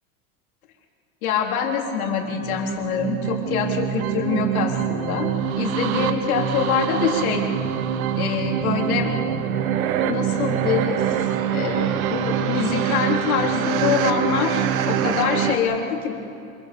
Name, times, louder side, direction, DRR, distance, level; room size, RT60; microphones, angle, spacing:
voice 1, 1.2-7.4 8.1-9.1 10.0-11.0 11.5-16.1, left 7 dB, 80° left, 1 dB, 4.0 m, -25 dB
sound 1, 2.3-15.6, right 9 dB, 75° right, 1.7 m, -24 dB
27.5 x 22.5 x 7.0 m, 2.8 s
supercardioid pair, 170°, 42 cm